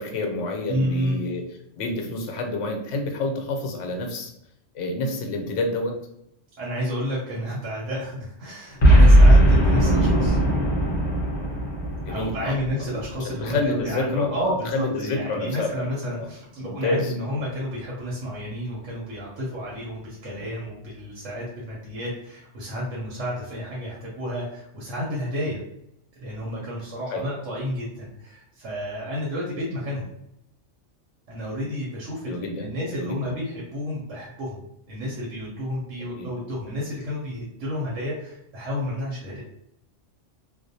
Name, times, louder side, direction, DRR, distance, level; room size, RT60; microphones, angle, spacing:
voice 1, 0.0-1.4 1.8-4.3 4.7-5.9 12.0-12.6 13.2-15.9 16.2-16.3 16.6-17.1 27.1-27.3 32.3-33.3 36.0-36.3, left 2 dB, 90° left, 3 dB, 0.9 m, -28 dB
voice 2, 0.7-1.2 6.6-10.4 12.1-25.6 26.2-30.1 31.3-34.6 34.9-39.4, equal, 90° right, -4 dB, 1.0 m, -31 dB
Boom, 8.8-13.2, equal, 40° left, 0.8 m, -17 dB
2.3 x 2.0 x 2.6 m, 0.79 s
omnidirectional pair, 1.2 m